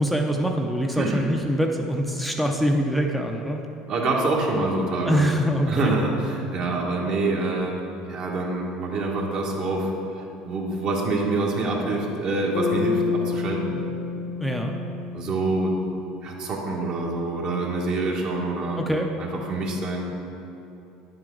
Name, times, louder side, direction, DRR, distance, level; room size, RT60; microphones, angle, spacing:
voice 1, 0.0-3.6 5.1-5.9 14.4-14.7 18.8-19.1, equal, ahead, 1 dB, 0.6 m, -24 dB
voice 2, 3.9-5.2 5.7-7.8 8.1-9.9 10.4-13.8 15.1-15.7 16.2-18.8 19.2-20.0, right 2 dB, 55° right, -1 dB, 1.7 m, -26 dB
Bass guitar, 12.5-16.6, left 5 dB, 85° left, 0.8 m, -29 dB
9.5 x 7.7 x 3.9 m, 2.9 s
supercardioid pair, 110°, 2 cm